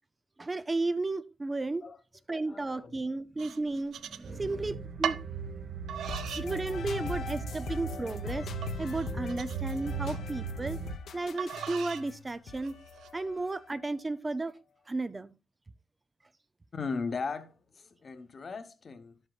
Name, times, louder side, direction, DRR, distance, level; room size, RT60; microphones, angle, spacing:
voice 1, 0.4-1.8 2.3-5.2 6.3-8.5 8.8-10.8 11.1-12.7 13.1-14.5 14.9-15.3, right 2 dB, 20° right, 0.4 m, -33 dB
voice 2, 2.3-3.0 4.3-4.7 7.5-7.6 9.7-9.8 16.7-19.1, left 4 dB, 35° left, 1.0 m, -38 dB
sound 1, 3.4-4.6 5.0-5.3 5.9-6.5 6.9-7.4 7.9-8.0 8.6-10.2 11.4-12.1 12.6-13.1, right 9 dB, 80° right, 0.5 m, -38 dB
sound 2, 4.2-10.9, right 5 dB, 55° right, 1.2 m, -38 dB
sound 3, 6.1-13.9, left 6 dB, 70° left, 0.8 m, -42 dB
11.5 x 7.9 x 2.3 m
wide cardioid pair, 145°, 0 cm